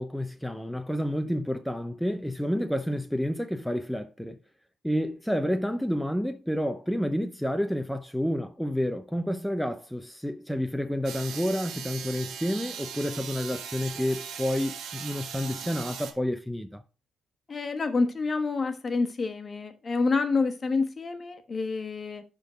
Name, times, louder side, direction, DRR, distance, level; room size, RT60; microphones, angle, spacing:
voice 1, 0.0-4.4 4.8-16.8, equal, ahead, 0.6 m, -29 dB
sound 1, 11.0-16.1, right 8 dB, 75° right, 1.5 m, -39 dB
voice 2, 17.5-22.2, left 4 dB, 35° left, 1.2 m, -28 dB
11.0 x 3.8 x 5.1 m
cardioid pair, 90°, 0 cm